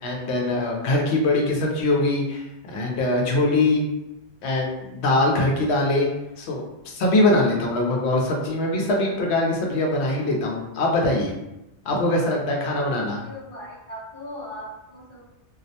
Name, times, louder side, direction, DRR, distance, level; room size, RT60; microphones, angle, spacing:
voice 1, 0.0-3.8 4.4-6.1 6.4-11.3 11.8-13.2, left 2 dB, 75° left, -1 dB, 0.8 m, -22 dB
voice 2, 0.8-1.2 3.5-3.7 12.2-15.2, equal, 55° left, -6 dB, 1.1 m, -39 dB
2.4 x 2.1 x 2.7 m, 0.94 s
omnidirectional pair, 1.2 m